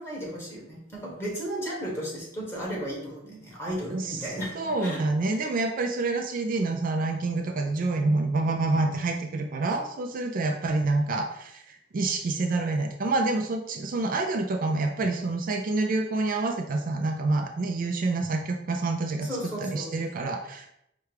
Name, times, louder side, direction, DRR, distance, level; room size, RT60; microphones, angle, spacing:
voice 1, 0.0-5.0 19.2-19.9, equal, 15° left, -5 dB, 1.5 m, -34 dB
voice 2, 3.9-4.2 4.5-19.3 19.6-20.7, right 3 dB, 45° right, 3 dB, 0.4 m, -27 dB
4.7 x 2.2 x 4.7 m, 0.77 s
head